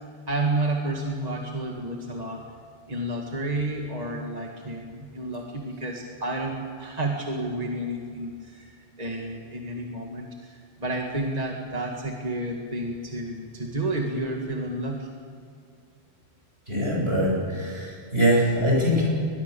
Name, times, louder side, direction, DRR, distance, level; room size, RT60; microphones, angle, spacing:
voice 1, 0.3-2.4 2.9-15.1, right 2 dB, 40° right, 0 dB, 2.1 m, -30 dB
voice 2, 16.7-19.0, equal, 75° right, -4 dB, 8.4 m, -23 dB
22.5 x 22.0 x 7.0 m, 2.3 s
omnidirectional pair, 1.1 m